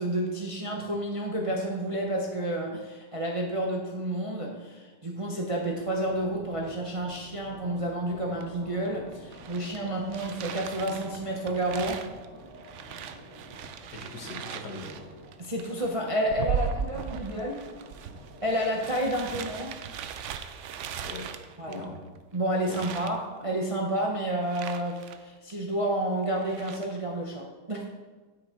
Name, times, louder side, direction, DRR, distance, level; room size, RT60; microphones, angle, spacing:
voice 1, 0.0-12.0 15.4-17.6 18.4-19.7 21.6-21.9 22.3-27.9, right 1 dB, 30° right, -1 dB, 0.7 m, -30 dB
sound 1, 5.5-19.7, right 1 dB, 40° left, 3.6 m, -50 dB
sound 2, 8.4-8.5 8.9-22.2 22.6-23.2 24.4-25.2 25.5-25.6 26.2-27.0, right 7 dB, 70° right, 0.7 m, -38 dB
voice 2, 13.9-15.1 21.0-21.3 21.7-22.0 22.7-23.0, left 2 dB, 70° left, 1 dB, 1.8 m, -41 dB
9.5 x 6.4 x 4.4 m, 1.3 s
omnidirectional pair, 1.8 m